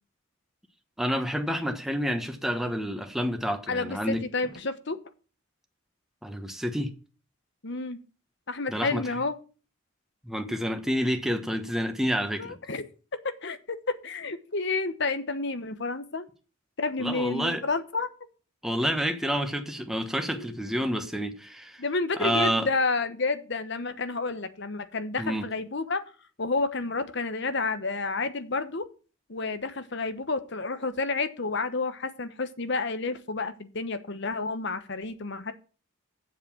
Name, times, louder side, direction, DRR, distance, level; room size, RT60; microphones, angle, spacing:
voice 1, 1.0-4.2 6.2-6.9 8.7-9.0 10.2-12.5 17.0-17.6 18.6-21.8 22.2-22.7 25.2-25.4, equal, ahead, 1.2 m, -29 dB
voice 2, 3.7-5.0 7.6-8.0 8.5-9.3 12.4-12.8 13.4-13.8 14.0-16.3 16.8-18.1 20.3-20.6 21.8-26.0 26.4-28.8 29.3-35.5, left 3 dB, 60° left, 1.1 m, -30 dB
8.0 x 7.4 x 7.2 m
head